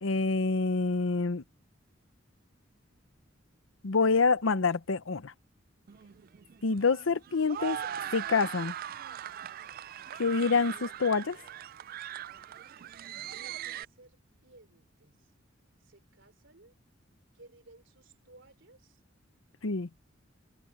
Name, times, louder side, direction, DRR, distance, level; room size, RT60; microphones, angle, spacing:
voice 1, 0.0-1.4 3.8-5.3 6.6-7.8 8.1-8.7 10.2-11.4 19.6-19.9, left 4 dB, 85° left, 0.8 m, -27 dB
sound 1, 5.9-13.8, right 10 dB, 50° right, 0.3 m, -40 dB
voice 2, 12.9-15.3 15.8-16.7 17.3-19.0, right 2 dB, 65° right, 4.0 m, -58 dB
head